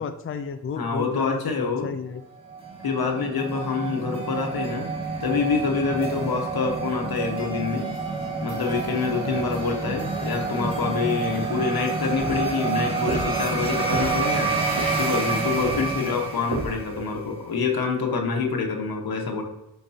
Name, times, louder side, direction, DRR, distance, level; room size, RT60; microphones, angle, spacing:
voice 1, 0.0-2.2 6.2-6.3 9.2-9.5 16.0-16.2, left 6 dB, 40° left, 8 dB, 0.5 m, -33 dB
voice 2, 0.8-1.9 2.8-4.9 5.2-7.9 8.4-14.6 15.0-19.4, left 5 dB, 90° left, 2 dB, 1.4 m, -26 dB
sound 1, 2.5-17.1, right 4 dB, 15° right, 1.8 m, -28 dB
sound 2, 12.2-17.1, right 2 dB, 80° right, 1.7 m, -34 dB
12.0 x 4.6 x 2.8 m, 0.91 s
wide cardioid pair, 130°, 35 cm